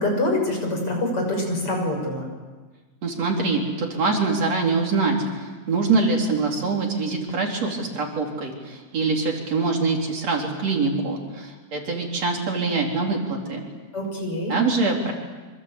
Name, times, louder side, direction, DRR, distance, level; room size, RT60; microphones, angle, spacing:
voice 1, 0.0-2.3 13.9-14.5, left 1 dB, 50° left, 2 dB, 7.2 m, -25 dB
voice 2, 3.0-13.6 14.5-15.1, right 3 dB, 60° right, 0 dB, 4.8 m, -24 dB
27.0 x 26.0 x 8.4 m, 1.3 s
omnidirectional pair, 3.3 m